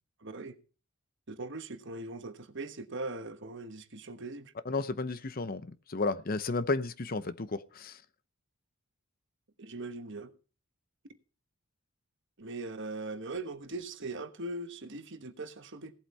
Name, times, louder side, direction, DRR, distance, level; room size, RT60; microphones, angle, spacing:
voice 1, 0.2-0.6 1.3-4.5 9.6-10.3 12.4-15.9, right 2 dB, 60° right, 1.3 m, -40 dB
voice 2, 4.7-8.0, left 3 dB, 45° left, 0.7 m, -33 dB
17.0 x 8.2 x 4.3 m
head